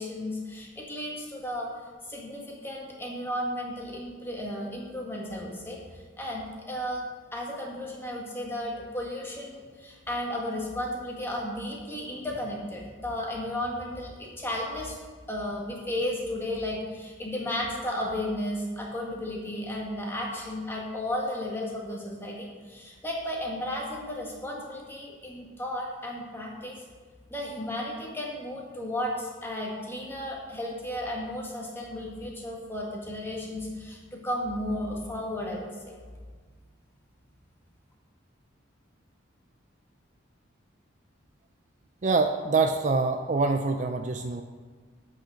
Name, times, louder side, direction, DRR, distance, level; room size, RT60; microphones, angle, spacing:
voice 1, 0.0-1.7 2.0-7.0 7.3-15.0 15.3-26.8 27.3-35.7, left 1 dB, 10° left, -2 dB, 1.6 m, -34 dB
voice 2, 42.0-44.4, right 3 dB, 40° right, 6 dB, 0.4 m, -25 dB
8.4 x 6.4 x 6.3 m, 1.5 s
head